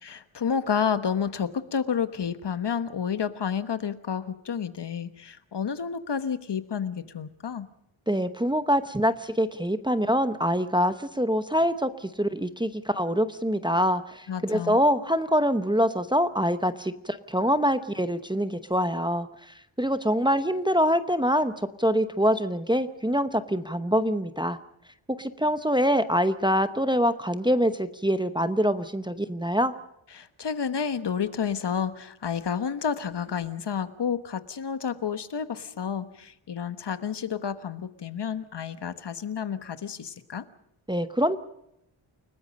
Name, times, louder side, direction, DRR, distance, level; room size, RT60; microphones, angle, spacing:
voice 1, 0.0-7.7 14.3-14.8 30.1-40.4, left 7 dB, 55° left, 12 dB, 1.3 m, -30 dB
voice 2, 8.1-24.6 25.1-29.7 40.9-41.4, equal, 10° right, 10 dB, 0.9 m, -25 dB
29.5 x 19.0 x 5.3 m, 0.79 s
wide cardioid pair, 170°, 49 cm